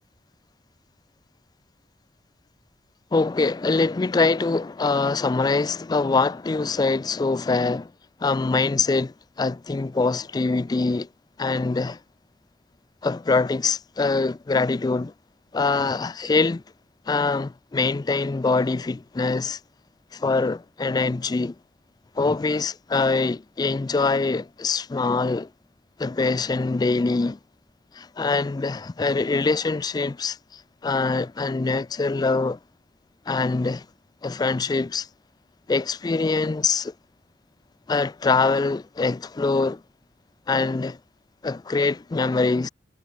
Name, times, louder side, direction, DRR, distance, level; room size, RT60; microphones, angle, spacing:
voice 1, 3.1-7.9 8.2-11.1 11.4-12.0 13.0-15.1 15.5-16.6 17.1-19.6 20.1-21.5 22.2-25.5 26.0-27.4 27.9-32.6 33.3-33.9 34.2-35.1 35.7-36.9 37.9-39.8 40.5-41.0 41.4-42.7, left 3 dB, 25° left, 0.3 m, -24 dB
head